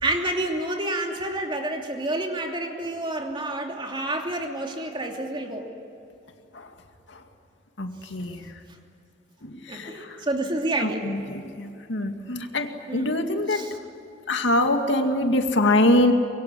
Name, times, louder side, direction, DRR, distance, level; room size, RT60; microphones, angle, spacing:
voice 1, 0.0-5.7 9.7-11.0 12.9-13.1 13.5-13.7, right 1 dB, 25° right, 2 dB, 2.9 m, -29 dB
voice 2, 7.8-8.6 9.4-10.3 10.8-13.9 14.3-16.1, left 1 dB, 75° left, 5 dB, 2.2 m, -24 dB
24.5 x 22.0 x 9.8 m, 2.6 s
head